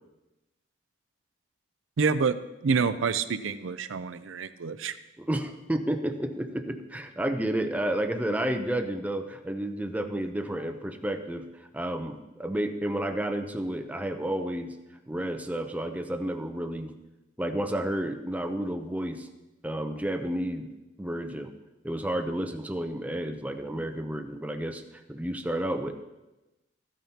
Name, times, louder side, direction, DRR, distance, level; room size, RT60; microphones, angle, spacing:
voice 1, 2.0-2.4 2.6-5.0, right 5 dB, 90° right, 12 dB, 0.5 m, -27 dB
voice 2, 5.2-14.7 15.1-16.9 17.4-19.3 19.6-20.7 21.0-21.5 21.8-25.9, right 1 dB, 10° right, 6 dB, 0.6 m, -31 dB
14.5 x 9.0 x 2.8 m, 1.0 s
head